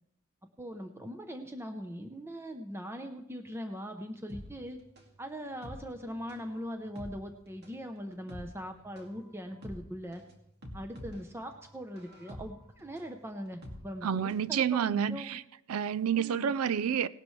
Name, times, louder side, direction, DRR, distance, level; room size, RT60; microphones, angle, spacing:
voice 1, 0.6-4.8 5.2-10.2 10.7-15.4 16.1-16.5, equal, 10° right, 0.7 m, -41 dB
sound 1, 4.3-14.5 14.8-14.9, left 1 dB, 50° right, 2.2 m, -48 dB
voice 2, 14.0-15.4 15.7-17.1, right 8 dB, 85° right, 0.4 m, -29 dB
18.5 x 12.0 x 3.2 m
head